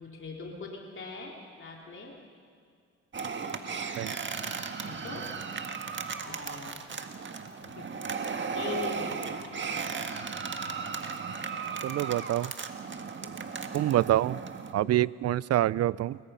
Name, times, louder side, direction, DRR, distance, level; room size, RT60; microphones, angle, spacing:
voice 1, 0.0-2.1 4.8-5.3 6.2-6.8 7.6-7.9 8.5-9.8 13.0-13.3 14.8-14.9, left 3 dB, 40° left, -1 dB, 3.3 m, -41 dB
sound 1, 3.1-14.7, right 5 dB, 40° right, 1.7 m, -36 dB
voice 2, 11.8-12.5 13.7-14.4 14.7-16.2, right 13 dB, 55° right, 21 dB, 0.5 m, -26 dB
29.5 x 22.0 x 5.6 m, 2.2 s
cardioid pair, 90°, 30 cm